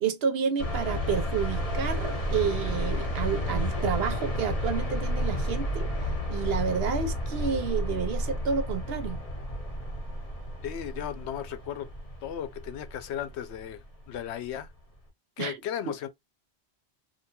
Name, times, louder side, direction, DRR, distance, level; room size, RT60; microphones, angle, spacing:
voice 1, 0.0-5.9 6.3-9.2 15.4-15.6, right 6 dB, 70° right, 0.8 m, -30 dB
sound 1, 0.6-14.5, equal, 35° left, 1.2 m, -31 dB
voice 2, 10.6-11.9 12.2-14.7 15.4-16.1, left 10 dB, 85° left, 0.9 m, -35 dB
2.8 x 2.2 x 2.8 m
omnidirectional pair, 1.1 m